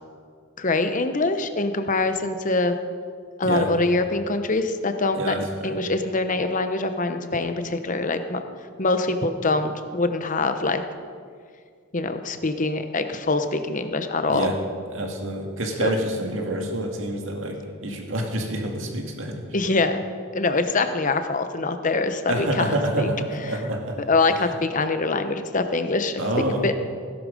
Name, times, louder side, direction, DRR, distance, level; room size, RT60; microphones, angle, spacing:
voice 1, 0.6-2.7 3.4-8.4 8.8-10.8 11.9-14.5 15.8-15.9 19.5-20.0 20.3-23.1 24.1-26.2 26.6-26.8, left 3 dB, 40° left, 8 dB, 0.9 m, -24 dB
voice 2, 5.2-5.8 14.3-14.6 14.9-19.4 22.3-24.0 26.2-26.6, right 1 dB, 65° right, 2 dB, 2.2 m, -27 dB
17.0 x 11.5 x 5.3 m, 2.1 s
head